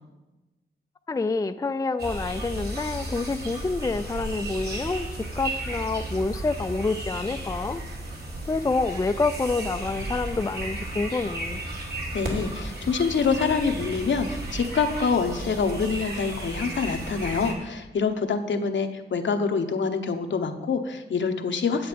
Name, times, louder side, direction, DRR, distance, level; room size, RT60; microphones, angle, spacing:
voice 1, 1.1-5.1 5.4-7.8 8.5-11.6, left 3 dB, 15° left, 9 dB, 0.4 m, -27 dB
sound 1, 2.0-17.5, right 1 dB, 55° right, 2.6 m, -34 dB
voice 2, 12.1-21.9, left 5 dB, 75° left, 6 dB, 0.9 m, -26 dB
9.8 x 7.9 x 5.2 m, 1.1 s
cardioid pair, 70°, 19 cm